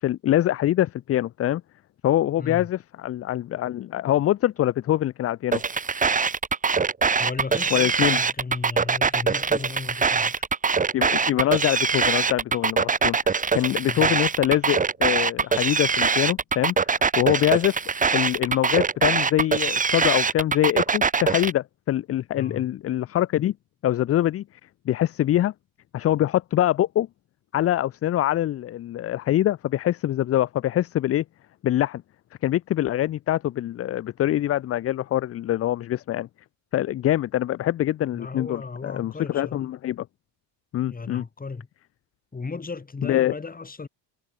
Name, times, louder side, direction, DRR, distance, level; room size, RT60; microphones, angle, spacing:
voice 1, 0.0-1.6 2.0-5.6 7.7-8.2 10.9-16.8 17.2-17.8 18.1-23.5 23.8-24.4 24.9-25.5 25.9-27.1 27.5-31.2 31.6-32.0 32.4-36.3 36.7-40.1 40.7-41.2 43.0-43.3, left 13 dB, 35° left, 0.4 m, -24 dB
voice 2, 2.4-2.7 7.2-10.4 13.8-14.1 22.4-22.7 38.1-39.7 40.9-41.7 42.3-43.9, left 4 dB, 20° left, 2.8 m, -35 dB
sound 1, 5.5-21.5, right 5 dB, 15° right, 0.9 m, -23 dB
cardioid pair, 130°, 46 cm